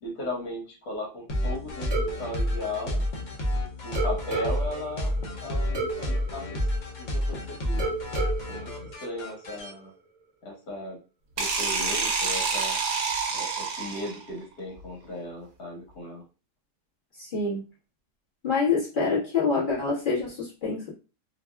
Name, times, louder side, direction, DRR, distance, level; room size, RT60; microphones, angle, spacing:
voice 1, 0.0-3.0 3.8-6.6 7.0-8.0 8.5-8.7 9.0-9.9 10.4-11.0 11.4-12.8 13.3-16.2, left 1 dB, 80° left, -2 dB, 1.7 m, -36 dB
sound 1, 1.3-9.7, left 1 dB, 60° left, 0.4 m, -30 dB
sound 2, 1.9-3.5 3.9-7.3 7.8-9.7, right 3 dB, 50° right, 0.7 m, -35 dB
sound 3, 11.4-14.3, right 5 dB, 70° right, 1.1 m, -27 dB
voice 2, 17.2-17.6 18.4-20.9, left 4 dB, 35° left, -7 dB, 1.4 m, -26 dB
3.4 x 2.3 x 2.2 m, 0.32 s
omnidirectional pair, 1.7 m